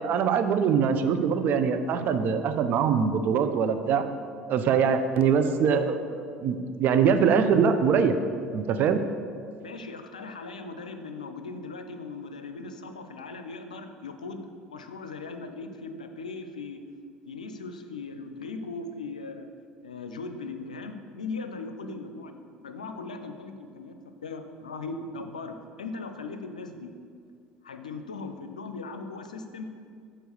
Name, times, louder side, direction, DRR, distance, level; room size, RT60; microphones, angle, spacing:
voice 1, 0.0-4.0 4.5-8.1 8.5-9.0, right 6 dB, 50° right, 8 dB, 0.6 m, -23 dB
voice 2, 9.6-16.8 17.3-19.5 19.8-24.0 24.2-26.9 27.6-29.7, left 3 dB, 90° left, 7 dB, 0.5 m, -39 dB
7.0 x 4.4 x 6.6 m, 2.3 s
hypercardioid pair, 65°, 4 cm